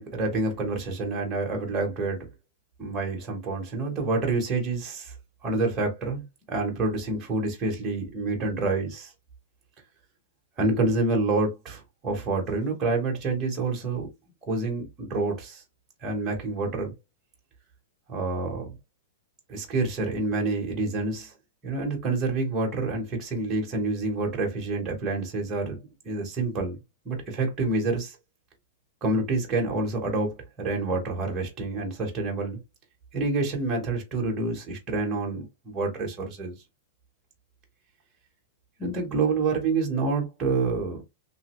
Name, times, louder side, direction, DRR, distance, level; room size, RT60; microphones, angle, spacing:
voice 1, 0.0-2.3 2.8-5.1 5.4-6.2 6.5-9.1 10.6-14.1 14.5-15.6 16.0-16.9 18.1-18.7 19.5-21.3 21.6-25.8 26.0-26.8 27.0-28.2 29.0-32.6 33.1-36.5 38.8-41.0, right 3 dB, 15° right, 1.0 m, -28 dB
3.0 x 2.6 x 3.0 m
supercardioid pair, 170°, 0 cm